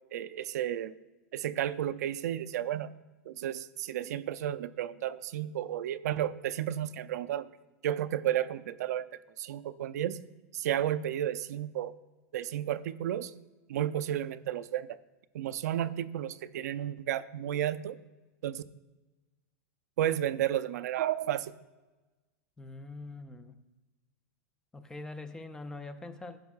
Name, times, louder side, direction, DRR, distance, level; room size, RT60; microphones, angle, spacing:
voice 1, 0.1-0.9 1.3-2.9 3.3-7.5 7.8-9.1 9.4-10.2 10.5-11.9 12.3-13.3 13.7-14.9 15.3-18.0 18.4-18.6 20.0-21.5, right 11 dB, 75° right, 14 dB, 0.4 m, -32 dB
voice 2, 22.6-23.6 24.7-26.4, left 2 dB, 10° left, 10 dB, 0.4 m, -43 dB
11.5 x 8.9 x 2.4 m, 1.2 s
supercardioid pair, 145°, 9 cm